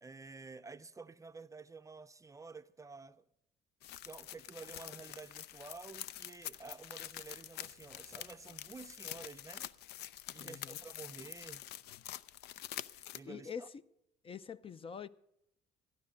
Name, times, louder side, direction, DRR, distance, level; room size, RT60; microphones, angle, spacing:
voice 1, 0.0-3.2 4.0-9.6 10.3-11.6 13.1-13.7, right 4 dB, 20° right, 0.5 m, -51 dB
sound 1, 3.8-13.2, left 13 dB, 75° left, 0.5 m, -47 dB
voice 2, 10.4-10.8 13.2-13.7 14.2-15.1, left 7 dB, 35° left, 0.5 m, -45 dB
14.5 x 10.5 x 6.4 m
cardioid pair, 110°, 17 cm